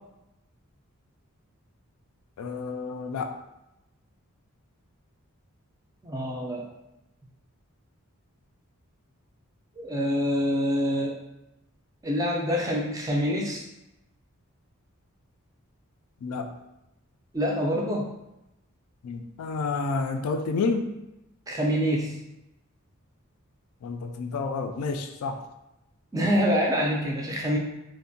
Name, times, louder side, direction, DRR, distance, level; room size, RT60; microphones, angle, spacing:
voice 1, 2.4-3.3 16.2-16.5 19.0-20.9 23.8-25.4, left 4 dB, 85° left, 4 dB, 0.3 m, -30 dB
voice 2, 6.0-6.6 9.8-11.2 12.0-13.6 17.3-18.1 21.5-22.1 26.1-27.6, equal, 15° right, -2 dB, 0.3 m, -26 dB
2.5 x 2.1 x 2.6 m, 0.91 s
head